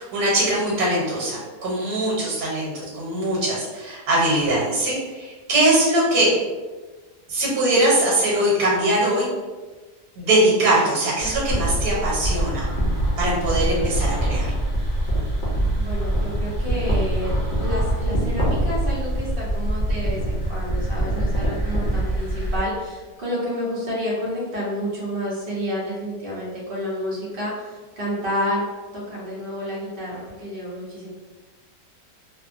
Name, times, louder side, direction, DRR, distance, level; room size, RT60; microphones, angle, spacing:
voice 1, 0.0-6.3 7.3-9.3 10.2-12.7 13.2-14.5, right 1 dB, 70° right, -6 dB, 1.3 m, -21 dB
sound 1, 11.2-22.6, right 1 dB, 55° left, 0.5 m, -24 dB
voice 2, 15.7-31.1, equal, 50° right, -5 dB, 0.7 m, -29 dB
2.9 x 2.1 x 2.4 m, 1.3 s
omnidirectional pair, 1.8 m